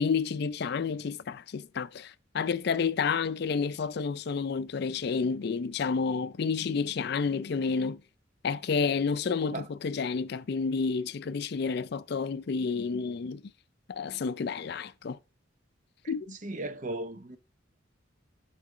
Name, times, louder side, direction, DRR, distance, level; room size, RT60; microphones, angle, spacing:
voice 1, 0.0-8.0 8.4-13.4 13.9-15.2 16.1-16.4, left 5 dB, 55° left, 0.4 m, -30 dB
voice 2, 16.4-17.4, right 2 dB, 40° right, 0.7 m, -36 dB
11.0 x 3.9 x 4.9 m
head